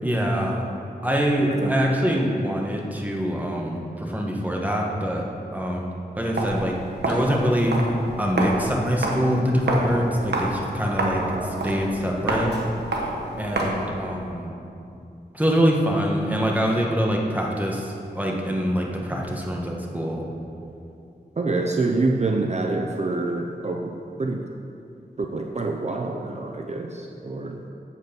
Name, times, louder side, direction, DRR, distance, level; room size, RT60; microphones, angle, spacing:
voice 1, 0.0-0.7 1.0-5.2 5.5-6.8 7.1-7.8 8.2-12.5 13.4-14.6 15.3-20.3, equal, 10° right, -1 dB, 1.4 m, -24 dB
voice 2, 1.4-2.3 11.1-12.2 21.4-24.5 25.2-27.6, right 3 dB, 40° right, 2 dB, 0.6 m, -27 dB
Walk footsteps, 6.3-13.9, right 2 dB, 80° right, 1.3 m, -28 dB
8.3 x 7.9 x 5.3 m, 2.6 s
wide cardioid pair, 75°, 17 cm